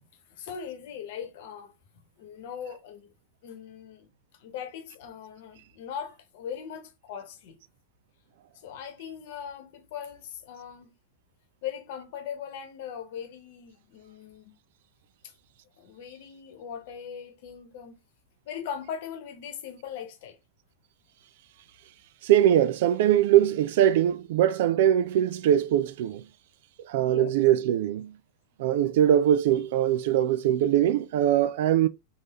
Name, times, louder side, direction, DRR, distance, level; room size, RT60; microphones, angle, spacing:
voice 1, 0.4-1.7 2.2-3.1 3.4-4.1 4.4-7.6 8.6-10.9 11.6-14.6 15.8-17.9 18.4-20.4 27.0-27.3, left 8 dB, 50° left, 1.1 m, -39 dB
voice 2, 22.2-26.2 26.9-28.1 28.6-31.9, right 11 dB, 55° right, 0.4 m, -22 dB
3.9 x 3.7 x 3.6 m
figure-of-eight pair, 90°, 0 cm